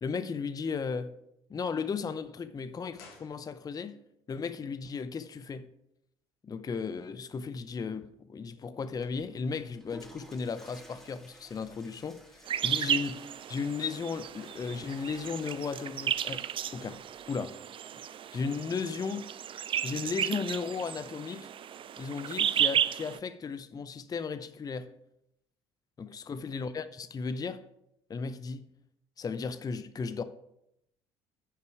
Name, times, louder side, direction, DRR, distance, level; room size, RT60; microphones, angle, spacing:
voice 1, 0.0-1.1 1.5-3.9 4.3-5.7 6.4-17.0 17.3-17.6 18.3-19.3 19.8-21.5 22.0-24.9 26.0-27.6 28.1-28.7 29.2-30.2, left 5 dB, 25° left, 0.6 m, -35 dB
sound 1, 2.9-4.0 4.3-4.4, left 4 dB, 75° left, 1.6 m, -54 dB
Water / Toilet flush, 8.9-17.2, equal, 5° left, 2.4 m, -55 dB
sound 2, 12.5-23.2, right 9 dB, 40° right, 0.5 m, -33 dB
9.5 x 6.8 x 4.7 m
hypercardioid pair, 60°, 14 cm